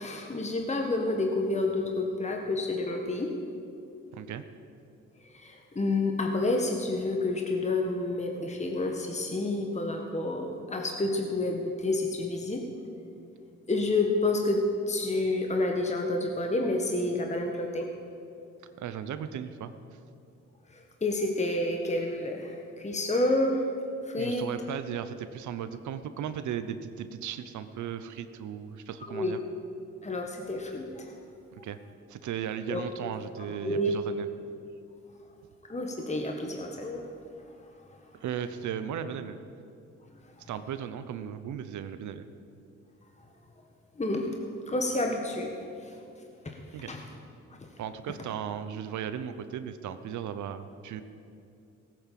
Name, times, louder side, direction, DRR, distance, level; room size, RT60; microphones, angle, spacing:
voice 1, 0.0-3.3 5.2-12.6 13.7-17.9 20.7-23.6 24.0-24.5 29.1-29.3 30.0-31.1 32.7-32.8 33.6-33.9 35.7-37.1 44.0-44.3 44.7-45.5 45.8-45.9 46.9-47.0, left 2 dB, 25° left, 2 dB, 1.6 m, -29 dB
voice 2, 4.1-4.4 18.8-19.7 24.2-29.4 31.6-31.8 32.1-34.3 38.1-39.4 40.5-42.2 46.7-46.9 47.8-51.0, right 9 dB, 75° right, 11 dB, 0.8 m, -36 dB
17.0 x 9.2 x 7.6 m, 2.6 s
cardioid pair, 70°, 29 cm